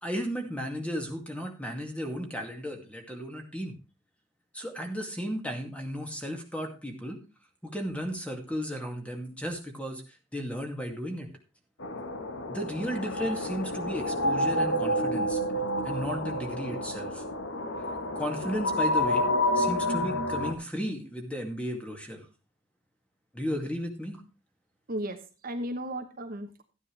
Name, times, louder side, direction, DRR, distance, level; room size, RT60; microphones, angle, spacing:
voice 1, 0.0-3.7 4.5-7.2 7.6-11.3 12.5-15.4 15.8-17.2 18.1-19.3 19.5-22.3 23.3-24.2, equal, 5° left, 3 dB, 2.3 m, -34 dB
sound 1, 11.8-20.5, left 1 dB, 75° left, 1.5 m, -29 dB
voice 2, 24.9-26.6, right 1 dB, 50° right, 6 dB, 1.2 m, -35 dB
13.0 x 9.7 x 3.4 m, 0.32 s
head